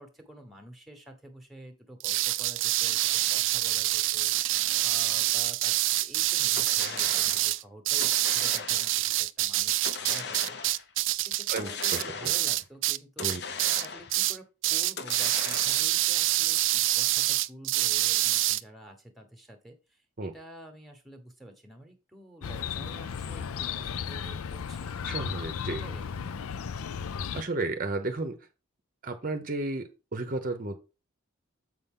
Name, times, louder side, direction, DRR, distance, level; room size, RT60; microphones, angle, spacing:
voice 1, 0.0-10.6 11.2-13.4 13.8-24.9 25.7-26.9, right 1 dB, ahead, 4 dB, 1.2 m, -49 dB
sound 1, 2.0-13.0 13.2-13.8 14.1-14.4 14.6-18.6, right 16 dB, 60° right, 0.4 m, -26 dB
sound 2, 6.6-7.5 8.0-9.1 9.8-10.9 11.6-12.6 13.2-14.3 15.0-16.1, left 5 dB, 50° left, 0.8 m, -39 dB
voice 2, 11.5-12.3 13.2-13.4 20.2-20.3 25.0-25.8 27.3-28.5 29.0-30.8, right 2 dB, 40° right, 7 dB, 0.7 m, -33 dB
Chirp tweet, 22.4-27.4, left 7 dB, 90° left, 0.5 m, -35 dB
7.5 x 5.5 x 3.7 m, 0.31 s
head